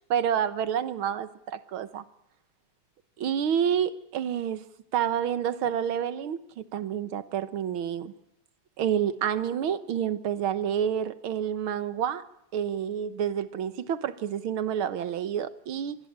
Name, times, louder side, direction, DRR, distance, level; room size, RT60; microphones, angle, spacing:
voice 1, 0.1-2.0 3.2-4.7 4.9-8.1 8.8-12.2 12.5-16.0, right 9 dB, 70° right, 14 dB, 2.0 m, -29 dB
26.0 x 20.0 x 8.8 m, 0.79 s
omnidirectional pair, 2.4 m